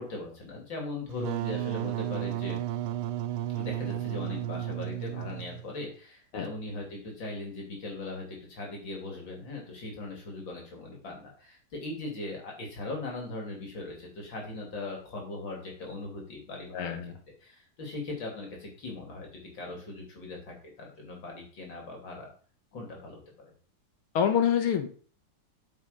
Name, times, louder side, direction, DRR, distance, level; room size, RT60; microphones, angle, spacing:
voice 1, 0.0-2.6 3.5-17.0 17.4-22.3 22.7-23.5, left 2 dB, 60° left, 0 dB, 3.6 m, -39 dB
Wind instrument woodwind instrument, 1.1-5.7, right 12 dB, 80° right, 1.5 m, -33 dB
voice 2, 16.7-17.1 24.2-24.9, left 8 dB, 80° left, 8 dB, 2.0 m, -26 dB
8.6 x 6.2 x 5.2 m, 0.43 s
omnidirectional pair, 2.4 m